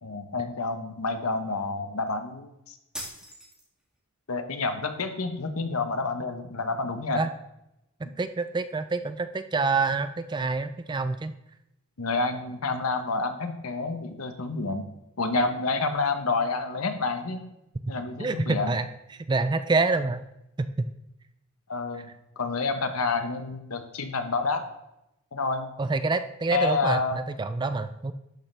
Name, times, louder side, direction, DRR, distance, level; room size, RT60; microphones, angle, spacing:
voice 1, 0.0-2.7 4.3-7.2 12.0-14.9 15.2-17.4 17.9-18.7 21.7-22.1 22.4-24.6 25.3-25.7 26.5-27.2, left 3 dB, 85° left, 7 dB, 1.0 m, -28 dB
sound 1, 2.9-4.0, equal, 5° right, 1.8 m, -40 dB
voice 2, 8.0-11.4 18.2-18.9 19.3-20.3 20.6-20.9 25.8-28.1, right 3 dB, 20° right, 11 dB, 0.3 m, -27 dB
11.5 x 6.6 x 3.3 m, 0.87 s
head